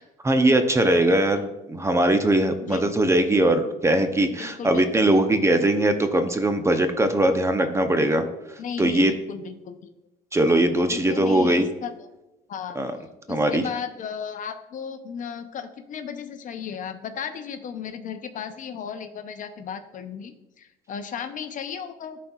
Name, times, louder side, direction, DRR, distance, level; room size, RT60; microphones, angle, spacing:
voice 1, 0.2-8.2 8.8-9.1 10.3-11.7 12.8-12.9 13.3-13.6, right 1 dB, 15° right, 7 dB, 0.6 m, -21 dB
voice 2, 4.4-4.8 5.1-5.2 8.6-9.9 10.9-12.1 12.5-12.8 13.3-22.2, left 7 dB, 50° left, 8 dB, 0.6 m, -35 dB
12.5 x 4.2 x 2.4 m, 0.97 s
cardioid pair, 110°, 17 cm